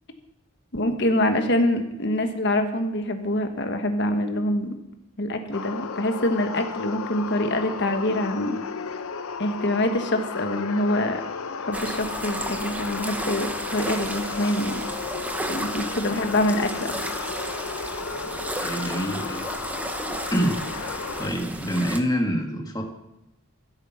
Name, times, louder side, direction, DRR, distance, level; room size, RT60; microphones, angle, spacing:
voice 1, 0.7-4.7 5.2-8.6 9.4-11.2 11.6-14.8 15.5-17.2, left 1 dB, 50° left, 6 dB, 1.4 m, -25 dB
sound 1, 5.5-21.3, left 5 dB, 75° left, 0.7 m, -34 dB
sound 2, 11.7-22.0, right 1 dB, 5° right, 0.8 m, -33 dB
voice 2, 18.6-19.5 20.3-22.8, equal, 15° left, 3 dB, 1.6 m, -27 dB
15.0 x 8.8 x 5.8 m, 0.92 s
head